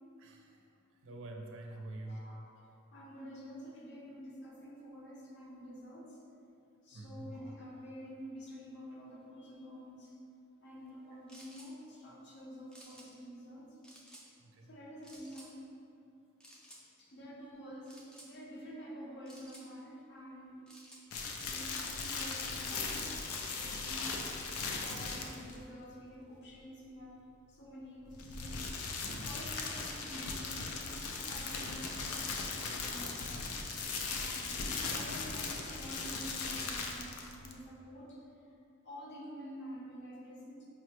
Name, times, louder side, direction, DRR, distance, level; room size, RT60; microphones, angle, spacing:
voice 1, 0.2-0.7 1.0-2.3 6.9-7.3 14.4-14.7 29.1-29.3, right 2 dB, 65° right, 1 dB, 0.4 m, -46 dB
voice 2, 1.7-2.5 2.9-6.2 6.8-10.1 10.6-13.8 14.6-15.6 17.0-20.6 21.5-24.3 24.8-27.2 27.5-28.7 29.0-33.6 34.1-38.2 38.8-40.7, equal, 55° left, -3 dB, 0.7 m, -49 dB
sound 1, 11.3-11.7 12.7-13.1 13.8-14.3 15.0-15.5 16.4-16.8 17.9-18.3 19.3-19.7 20.7-21.5 21.8-22.8, equal, 5° left, 0.4 m, -55 dB
sound 2, 21.1-25.6 28.1-37.6, left 4 dB, 90° left, 0.4 m, -38 dB
5.4 x 2.0 x 2.9 m, 2.6 s
head